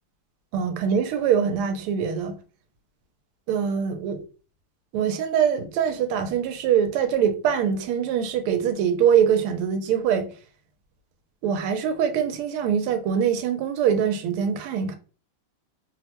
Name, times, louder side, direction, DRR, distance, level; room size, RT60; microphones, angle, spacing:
voice 1, 0.5-2.4 3.5-4.2 4.9-10.3 11.4-15.0, right 8 dB, 85° right, 1.5 m, -23 dB
3.5 x 2.1 x 2.8 m
omnidirectional pair, 2.4 m